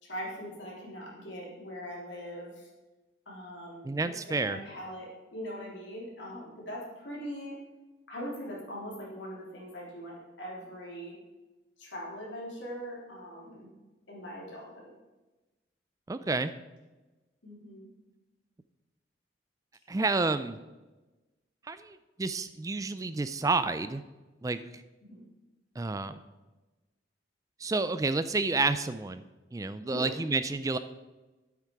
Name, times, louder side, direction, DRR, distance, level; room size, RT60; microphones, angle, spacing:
voice 1, 0.0-2.7 3.3-3.9 4.3-7.6 8.1-11.1 11.8-13.7 14.1-14.9 17.4-17.9 25.0-25.2 29.9-30.1, equal, 80° left, -3 dB, 3.7 m, -41 dB
voice 2, 3.9-4.6 16.1-16.5 19.9-20.6 21.7-24.0 24.4-24.6 25.8-26.2 27.6-29.2 29.5-30.8, right 3 dB, 20° right, 12 dB, 0.3 m, -30 dB
10.0 x 8.4 x 4.8 m, 1.1 s
head